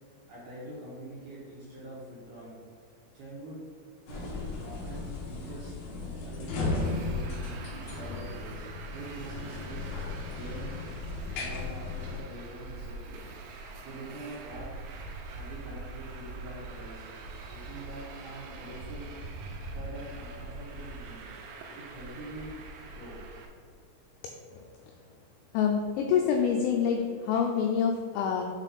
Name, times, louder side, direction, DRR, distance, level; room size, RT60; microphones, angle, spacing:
voice 1, 0.3-2.6 3.1-3.6 4.1-7.3 7.9-9.9 10.3-10.7 11.4-13.4 13.8-14.7 15.3-17.1 17.5-19.1 19.7-21.3 21.8-23.2, right 1 dB, 70° right, -7 dB, 2.4 m, -44 dB
sound 1, 4.1-12.2, left 3 dB, 70° left, 2.6 m, -36 dB
Traffic noise roadway noise, 6.7-23.5, right 3 dB, 90° right, 3.4 m, -43 dB
voice 2, 25.5-28.4, left 7 dB, 85° left, 2 dB, 2.7 m, -26 dB
8.1 x 3.7 x 4.1 m, 2.2 s
omnidirectional pair, 5.9 m